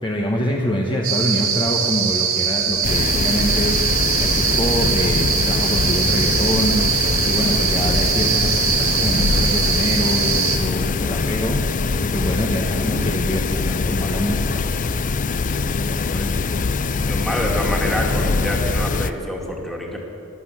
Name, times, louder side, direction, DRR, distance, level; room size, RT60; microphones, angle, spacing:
voice 1, 0.0-14.6, equal, 25° left, -1 dB, 1.1 m, -25 dB
sound 1, 1.0-10.6, right 7 dB, 75° right, 1.8 m, -21 dB
sound 2, 2.8-19.1, left 3 dB, 40° left, 0.4 m, -23 dB
voice 2, 17.0-20.0, equal, ahead, -1 dB, 2.1 m, -27 dB
12.5 x 12.0 x 7.3 m, 2.8 s
head